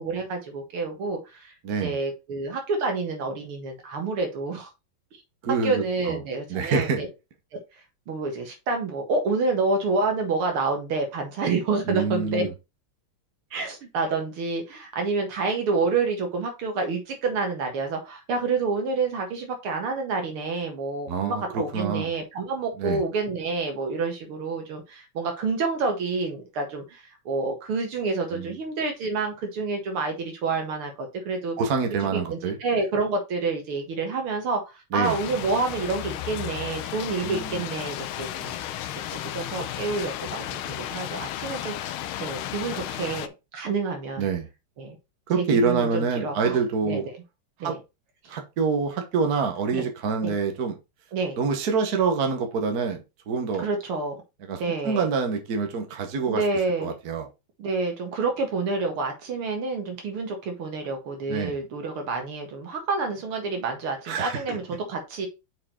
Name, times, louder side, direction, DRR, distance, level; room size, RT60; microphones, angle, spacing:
voice 1, 0.0-1.5 1.8-4.7 5.6-7.1 7.5-7.6 8.1-12.5 13.5-31.6 32.0-38.6 39.2-41.9 42.2-44.3 44.8-45.0 45.4-46.6 46.8-47.0 47.6-47.8 49.7-49.9 50.2-50.3 51.1-51.4 53.6-54.2 54.6-55.1 56.3-56.9 57.6-65.3, right 3 dB, 85° right, 2.6 m, -28 dB
voice 2, 1.6-2.0 5.4-6.2 6.5-7.0 11.9-12.5 21.1-22.1 22.8-23.0 28.3-28.5 31.6-32.6 34.9-35.2 37.2-37.6 44.2-44.5 45.3-47.1 47.6-47.8 48.3-50.7 51.4-53.7 54.5-56.4 56.8-57.3 61.3-61.6 64.0-64.6, right 5 dB, 50° right, 1.6 m, -26 dB
sound 1, 35.0-43.3, left 12 dB, 80° left, 1.5 m, -34 dB
6.2 x 4.6 x 4.3 m
omnidirectional pair, 2.3 m